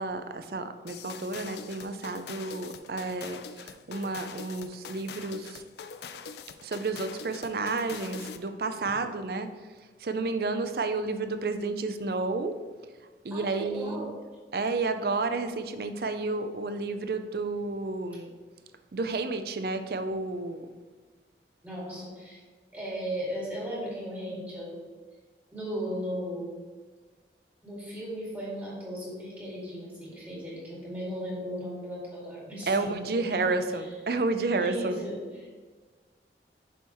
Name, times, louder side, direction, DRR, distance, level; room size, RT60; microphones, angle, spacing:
voice 1, 0.0-5.6 6.6-9.5 10.0-12.5 13.2-14.1 14.5-18.4 18.9-20.7 32.7-35.0, right 3 dB, 60° right, 9 dB, 0.5 m, -31 dB
sound 1, 0.9-8.5, left 6 dB, 70° left, 0.4 m, -43 dB
voice 2, 13.3-14.1 21.6-22.4 22.7-24.9 25.5-26.5 27.6-33.9 34.6-35.5, equal, 10° right, -6 dB, 2.1 m, -36 dB
7.0 x 5.7 x 3.1 m, 1.4 s
head